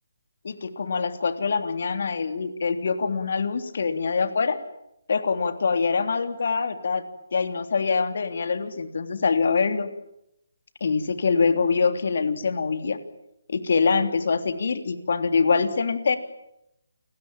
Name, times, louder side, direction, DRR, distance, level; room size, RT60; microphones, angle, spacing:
voice 1, 0.4-4.6 5.1-7.0 7.3-9.9 10.8-13.0 13.5-16.2, left 5 dB, 60° left, 8 dB, 3.4 m, -24 dB
29.5 x 20.5 x 9.1 m, 0.82 s
figure-of-eight pair, 150°, 0 cm